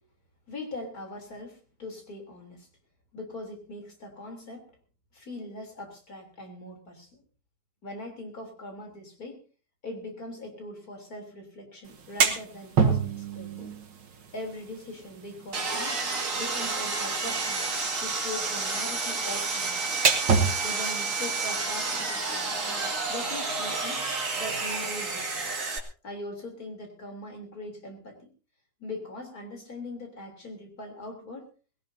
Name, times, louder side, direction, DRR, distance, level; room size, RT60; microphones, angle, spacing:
voice 1, 0.5-2.7 3.1-4.7 5.1-7.2 7.8-9.4 9.8-13.7 14.3-16.0 16.3-20.0 20.6-22.5 23.1-24.1 24.4-25.5 26.0-28.3 28.8-31.5, left 2 dB, 55° left, 2 dB, 4.0 m, -41 dB
sound 1, 11.9-23.1, right 5 dB, 90° right, 2.4 m, -31 dB
Sawing, 15.5-25.8, right 3 dB, 45° right, 2.5 m, -30 dB
20.5 x 17.5 x 2.8 m, 0.35 s
omnidirectional pair, 1.9 m